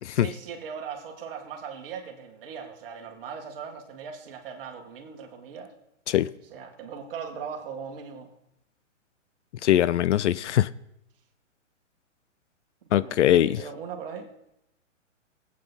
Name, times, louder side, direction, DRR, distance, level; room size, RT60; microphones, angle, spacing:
voice 1, 0.1-5.7 6.5-8.3 12.8-14.3, right 6 dB, 45° right, 2.0 m, -39 dB
voice 2, 9.6-10.7 12.9-13.6, left 12 dB, 65° left, 0.5 m, -21 dB
20.0 x 8.7 x 4.1 m
hypercardioid pair, 145°, 38 cm